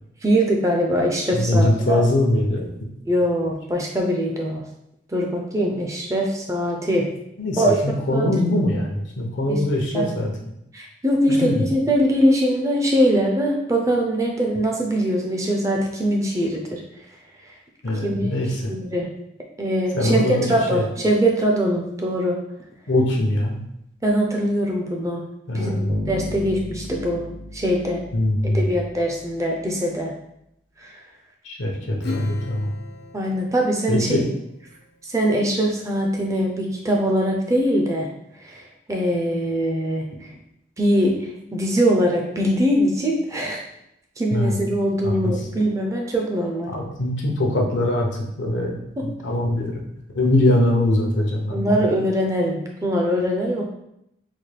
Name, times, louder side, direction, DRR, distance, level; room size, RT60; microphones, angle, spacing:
voice 1, 0.2-2.0 3.1-4.6 5.1-7.1 7.6-7.8 8.1-8.3 9.5-9.6 9.9-10.1 10.7-16.8 17.5-17.6 18.0-18.4 18.7-19.1 19.6-20.2 20.5-22.4 24.0-25.2 25.5-27.2 27.5-28.0 28.4-30.1 30.8-31.0 33.1-34.2 35.0-38.1 38.4-40.3 40.8-43.6 44.2-46.7 49.0-49.1 51.5-53.6, equal, 15° right, 0 dB, 0.4 m, -22 dB
voice 2, 1.3-2.7 7.4-10.3 11.3-11.6 17.8-18.7 19.9-20.9 22.9-23.6 25.5-26.0 28.1-28.6 31.4-32.7 33.9-34.2 44.3-44.6 45.0-45.3 46.7-48.7 49.0-49.8 50.1-51.9, left 1 dB, 80° left, 0 dB, 0.7 m, -22 dB
Bass guitar, 25.9-29.0, left 1 dB, 50° right, 0.6 m, -34 dB
Acoustic guitar / Strum, 32.0-34.9, left 4 dB, 55° left, 0.4 m, -38 dB
4.0 x 2.1 x 3.2 m, 0.80 s
head